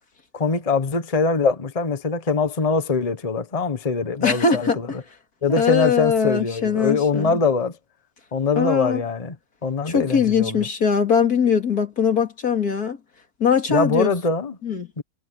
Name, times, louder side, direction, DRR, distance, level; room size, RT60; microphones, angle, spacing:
voice 1, 0.3-5.0 5.4-7.8 8.3-9.3 9.6-10.7 13.7-14.6 15.0-15.1, left 4 dB, 25° left, 1.3 m, -23 dB
voice 2, 4.2-4.8 5.5-7.4 8.6-9.0 9.9-13.0 13.4-14.1 14.6-14.9, left 6 dB, 80° left, 3.1 m, -21 dB
omnidirectional pair, 1.6 m